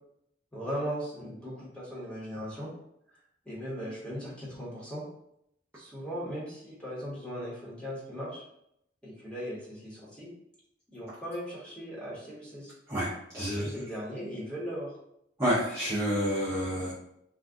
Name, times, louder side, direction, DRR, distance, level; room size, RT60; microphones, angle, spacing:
voice 1, 0.5-2.7 3.5-5.0 5.8-8.4 9.0-10.3 10.9-12.7 13.3-14.9, equal, 5° left, -7 dB, 1.1 m, -38 dB
voice 2, 13.3-13.7 15.4-16.9, equal, 15° right, -10 dB, 0.7 m, -28 dB
2.5 x 2.4 x 3.5 m, 0.76 s
head